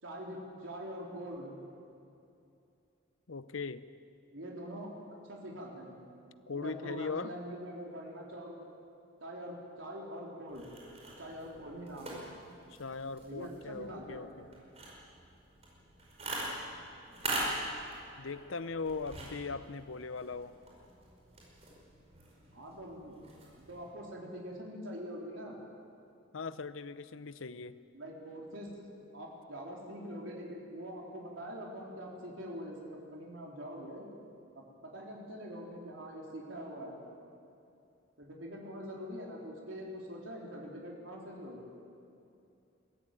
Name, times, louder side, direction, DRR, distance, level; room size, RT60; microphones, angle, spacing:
voice 1, 0.0-1.5 4.3-4.9 5.2-6.0 6.5-8.6 9.2-10.7 11.0-12.2 13.2-14.4 22.5-23.2 23.5-25.6 27.9-28.7 29.1-34.1 34.5-37.0 38.2-41.7, equal, 80° right, -2 dB, 4.0 m, -44 dB
voice 2, 3.3-3.9 6.5-7.3 12.7-14.5 18.2-20.5 26.3-27.8, left 4 dB, 85° left, 14 dB, 0.8 m, -39 dB
sound 1, 10.5-23.9, right 2 dB, 30° right, 5.1 m, -43 dB
22.5 x 15.0 x 9.2 m, 2.6 s
head